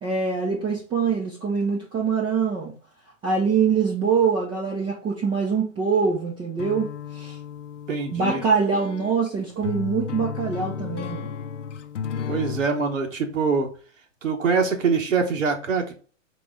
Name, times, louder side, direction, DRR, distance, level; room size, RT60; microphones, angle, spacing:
voice 1, 0.0-2.7 3.2-7.4 8.1-11.4, right 5 dB, 15° right, -2 dB, 0.5 m, -24 dB
sound 1, 6.6-12.7, left 7 dB, 70° left, 0.6 m, -33 dB
voice 2, 7.9-8.4 12.3-13.7 14.2-15.9, right 5 dB, 85° right, 2 dB, 1.1 m, -24 dB
4.1 x 3.0 x 3.5 m, 0.39 s
hypercardioid pair, 125°, 38 cm